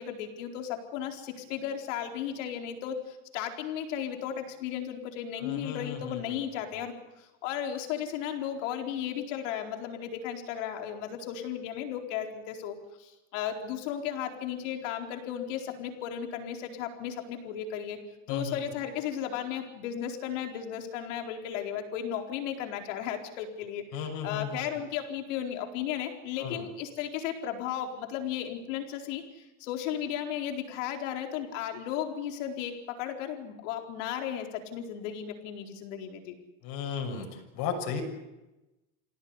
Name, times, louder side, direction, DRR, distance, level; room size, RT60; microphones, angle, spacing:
voice 1, 0.0-18.0 18.3-36.4, left 9 dB, 85° left, 4 dB, 4.4 m, -35 dB
voice 2, 5.4-6.4 18.3-18.6 23.9-24.6 26.4-26.6 36.6-37.3 37.5-38.0, left 7 dB, 65° left, 2 dB, 7.1 m, -35 dB
27.0 x 17.5 x 9.8 m, 1.0 s
supercardioid pair, 115°, 37 cm